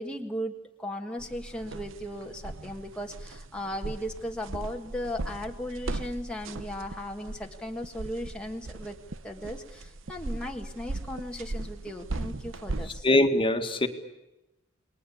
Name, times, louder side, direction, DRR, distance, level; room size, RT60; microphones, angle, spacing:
voice 1, 0.0-9.0 9.2-13.1, equal, 5° left, 1 dB, 1.5 m, -37 dB
sound 1, 1.2-13.0, right 2 dB, 80° right, 1.0 m, -38 dB
voice 2, 13.0-13.9, left 1 dB, 25° left, 6 dB, 1.8 m, -22 dB
29.5 x 21.0 x 8.6 m, 0.98 s
head